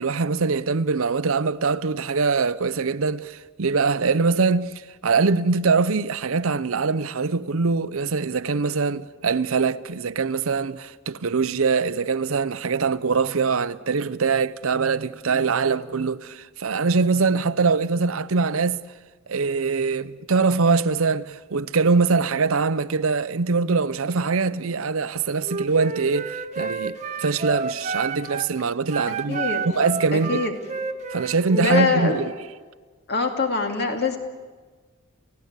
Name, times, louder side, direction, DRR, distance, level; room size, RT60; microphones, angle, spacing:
voice 1, 0.0-18.8 19.3-30.4 31.1-32.3, right 4 dB, 70° right, 0.7 m, -23 dB
Wind instrument woodwind instrument, 25.4-28.5 28.9-32.3, right 4 dB, 35° right, 1.4 m, -30 dB
voice 2, 29.1-29.6 30.1-30.5 31.2-32.2 33.1-34.2, left 4 dB, 50° left, 2.4 m, -24 dB
30.0 x 16.0 x 8.1 m
head